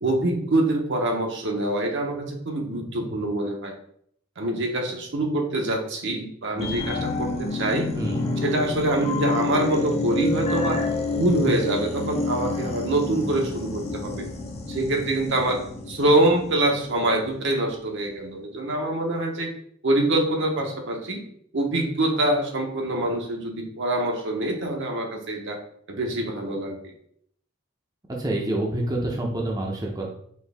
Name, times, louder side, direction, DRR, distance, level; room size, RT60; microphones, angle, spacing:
voice 1, 0.0-3.7 4.4-7.9 8.4-10.8 11.1-14.3 14.7-19.5 19.8-21.2 21.5-25.6 25.9-26.9, right 1 dB, 60° right, 2 dB, 0.8 m, -25 dB
sound 1, 6.6-17.6 18.0-18.1, left 3 dB, 30° left, 0.5 m, -29 dB
voice 2, 8.0-8.3 28.2-30.1, right 1 dB, 20° right, -2 dB, 0.6 m, -27 dB
4.4 x 2.8 x 3.4 m, 0.65 s
head